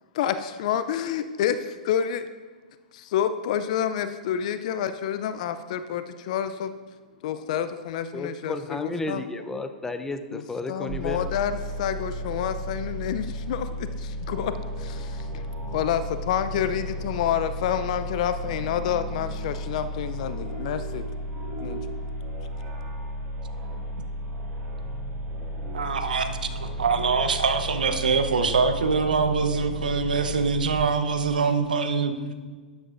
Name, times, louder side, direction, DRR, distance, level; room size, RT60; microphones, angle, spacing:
voice 1, 0.2-2.2 2.9-6.7 7.2-9.2 10.3-10.4 10.7-11.5 11.8-14.5 14.8-15.4 15.7-21.1 21.6-21.8, left 9 dB, 55° left, 11 dB, 0.6 m, -28 dB
voice 2, 8.1-11.3, left 2 dB, 10° left, 9 dB, 0.7 m, -32 dB
sound 1, 10.9-30.8, equal, 25° right, 3.4 m, -34 dB
voice 3, 25.7-32.1, right 5 dB, 80° right, 8 dB, 1.0 m, -24 dB
12.5 x 10.5 x 2.6 m, 1.5 s
hypercardioid pair, 110°, 5 cm